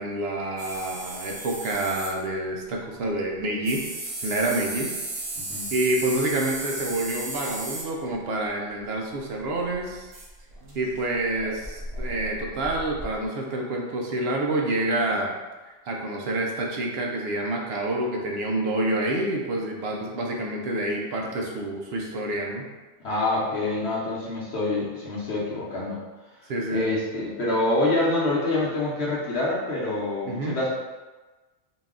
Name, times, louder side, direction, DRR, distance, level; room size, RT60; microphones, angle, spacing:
voice 1, 0.0-3.8 4.2-4.9 5.7-10.1 10.7-15.3 15.9-22.7 26.5-26.9 30.3-30.6, right 2 dB, 60° right, 0 dB, 0.8 m, -28 dB
sound 1, 0.6-2.1 3.6-7.8 9.2-9.3 9.4-13.3, right 2 dB, 90° right, 1.3 m, -35 dB
voice 2, 23.0-26.0 26.7-30.7, left 2 dB, 60° left, -6 dB, 1.0 m, -26 dB
4.0 x 2.3 x 3.6 m, 1.2 s
omnidirectional pair, 1.3 m